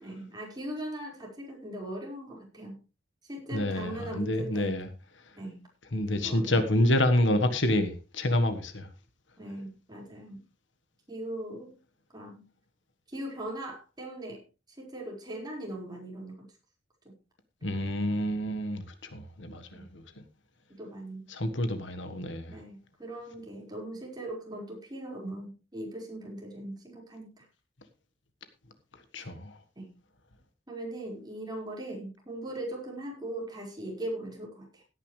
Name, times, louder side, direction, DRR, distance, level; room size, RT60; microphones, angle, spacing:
voice 1, 0.0-2.8 3.2-4.8 5.4-5.7 6.1-6.6 9.4-10.4 11.1-11.8 12.1-12.4 13.1-14.4 14.8-16.5 17.0-17.1 19.7-19.9 20.8-21.3 22.5-27.4 29.2-29.3 29.7-29.9 30.7-34.8, right 1 dB, 20° right, 5.1 m, -39 dB
voice 2, 3.5-4.9 5.9-8.9 17.6-18.8 19.1-20.2 21.3-22.6 29.1-29.6, left 1 dB, 70° left, 1.5 m, -28 dB
17.0 x 9.8 x 3.3 m
head